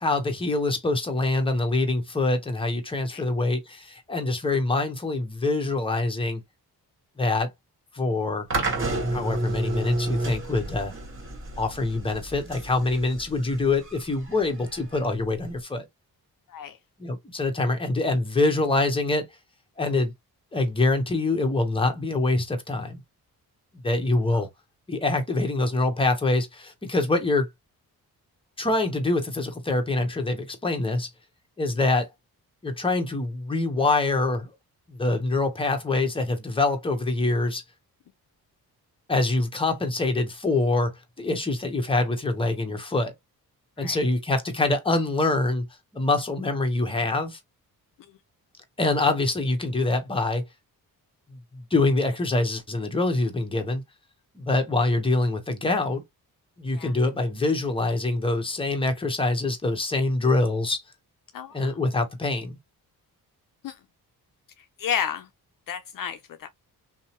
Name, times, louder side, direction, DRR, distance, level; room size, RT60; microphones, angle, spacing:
voice 1, 0.0-6.4 7.2-7.5 7.9-8.5 9.1-10.9 11.6-15.9 17.0-19.2 19.8-20.1 20.5-23.0 23.8-24.5 24.9-27.5 28.6-31.1 31.6-32.1 32.6-34.5 34.9-37.6 39.1-43.1 43.8-45.7 45.9-47.4 48.8-50.4 51.5-53.8 54.4-56.0 56.6-60.8 61.5-62.6, left 2 dB, 15° left, 0.8 m, -25 dB
sound 1, 8.5-15.6, right 2 dB, 35° right, 1.2 m, -31 dB
voice 2, 61.3-61.8 63.6-63.7 64.8-65.3 65.7-66.5, left 8 dB, 60° left, 0.5 m, -31 dB
2.6 x 2.0 x 2.8 m
cardioid pair, 70°, 38 cm